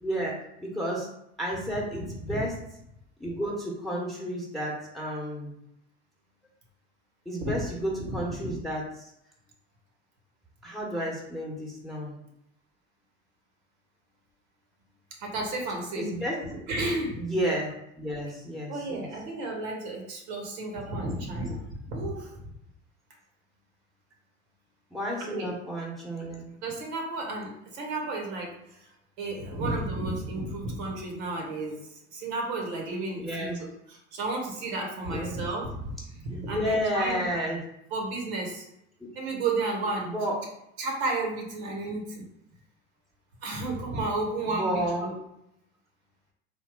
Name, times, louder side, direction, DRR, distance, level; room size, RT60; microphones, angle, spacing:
voice 1, 0.0-1.1 1.4-2.5 3.2-5.5 7.2-9.1 10.6-12.2 15.9-16.4 17.2-19.1 24.9-26.5 33.2-33.6 35.1-35.4 36.3-37.6 39.0-39.1 40.0-40.4 44.4-45.1, equal, ahead, -3 dB, 1.1 m, -31 dB
voice 2, 15.2-16.1 16.7-17.2 18.7-22.3 25.2-25.5 26.6-28.9 29.2-37.4 37.9-38.6 39.1-40.1 40.8-42.3 43.4-45.1, right 2 dB, 60° right, 1 dB, 1.2 m, -32 dB
3.6 x 2.3 x 3.6 m, 0.80 s
hypercardioid pair, 80°, 36 cm